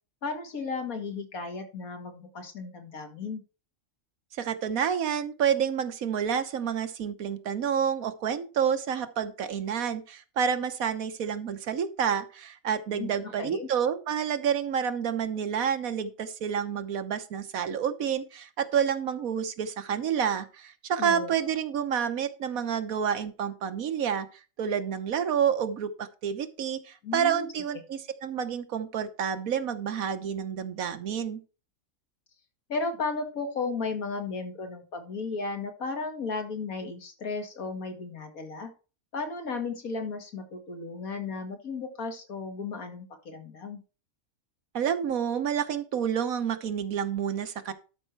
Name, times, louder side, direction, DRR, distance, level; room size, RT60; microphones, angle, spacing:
voice 1, 0.2-3.4 12.9-13.7 21.0-21.3 27.0-27.5 27.7-27.8 32.7-38.7 39.1-43.8, left 4 dB, 85° left, 5 dB, 2.4 m, -34 dB
voice 2, 4.4-24.3 24.6-31.4 44.7-47.7, right 8 dB, 80° right, 10 dB, 1.4 m, -29 dB
12.0 x 5.5 x 4.5 m, 0.33 s
omnidirectional pair, 1.5 m